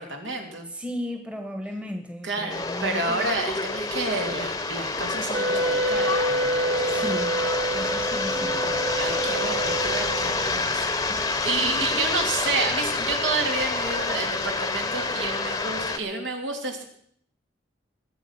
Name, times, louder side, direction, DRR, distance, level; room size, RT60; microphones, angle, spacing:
voice 1, 0.0-0.7 2.2-7.1 9.0-16.8, right 3 dB, 75° right, 3 dB, 3.0 m, -30 dB
voice 2, 0.7-3.2 6.9-7.3 7.7-8.7 11.1-11.2 11.6-12.1, equal, 5° right, 5 dB, 1.3 m, -35 dB
sound 1, 2.5-16.0, left 3 dB, 20° left, 0.9 m, -28 dB
Wind instrument woodwind instrument, 5.3-10.5, right 1 dB, 55° right, 1.3 m, -27 dB
21.0 x 7.9 x 5.8 m, 0.65 s
head